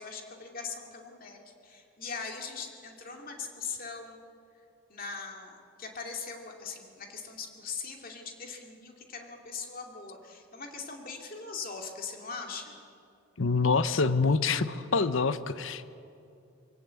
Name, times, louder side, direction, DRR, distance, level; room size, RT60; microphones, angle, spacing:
voice 1, 0.0-4.2 4.9-12.7, left 5 dB, 40° left, 2 dB, 2.6 m, -41 dB
voice 2, 13.4-15.9, left 4 dB, 70° left, 13 dB, 0.8 m, -26 dB
23.5 x 17.5 x 8.3 m, 2.6 s
head